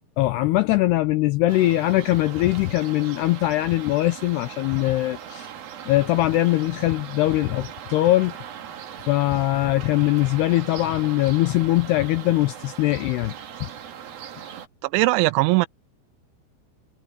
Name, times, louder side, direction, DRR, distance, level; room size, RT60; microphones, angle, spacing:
voice 1, 0.2-5.5 5.9-8.3 9.1-13.3 13.6-13.7, left 17 dB, 80° left, 2.4 m, -21 dB
sound 1, 1.5-14.7, right 9 dB, 55° right, 3.6 m, -39 dB
voice 2, 14.8-15.7, right 22 dB, 85° right, 2.8 m, -19 dB
omnidirectional pair, 5.5 m